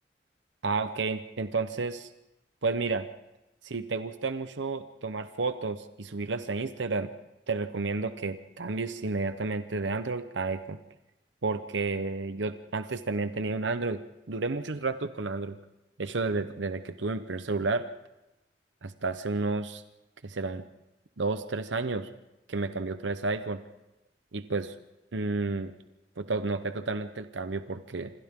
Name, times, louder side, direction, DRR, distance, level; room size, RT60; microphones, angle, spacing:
voice 1, 0.6-2.1 2.6-3.1 3.6-7.1 7.5-10.8 11.4-14.0 14.3-15.6 16.0-17.9 18.8-19.8 20.2-20.6 21.2-22.1 22.5-23.6 24.3-24.7 25.1-25.7 26.2-28.1, right 3 dB, 85° right, 10 dB, 0.9 m, -31 dB
27.5 x 25.5 x 3.7 m, 0.96 s
head